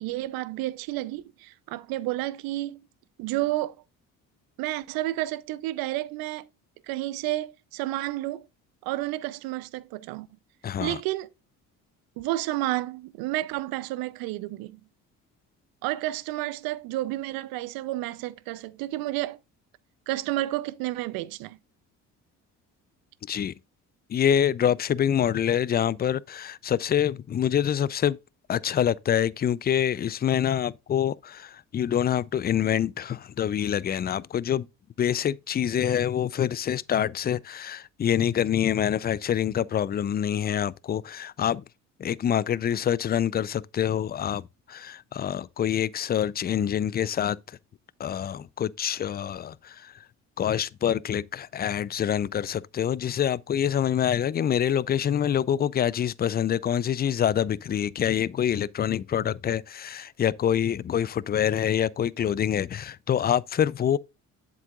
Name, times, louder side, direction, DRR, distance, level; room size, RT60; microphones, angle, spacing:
voice 1, 0.0-2.8 3.2-3.8 4.6-6.5 6.9-8.4 8.8-10.3 10.8-11.3 12.2-14.8 15.8-19.4 20.1-21.6, right 16 dB, 75° right, 0.6 m, -31 dB
voice 2, 10.6-11.0 23.3-23.5 24.1-28.2 28.5-34.7 35.0-41.6 42.0-44.4 44.7-47.6 48.0-49.9 50.4-64.0, left 9 dB, 30° left, 0.4 m, -26 dB
7.8 x 7.4 x 2.3 m
supercardioid pair, 70°, 35 cm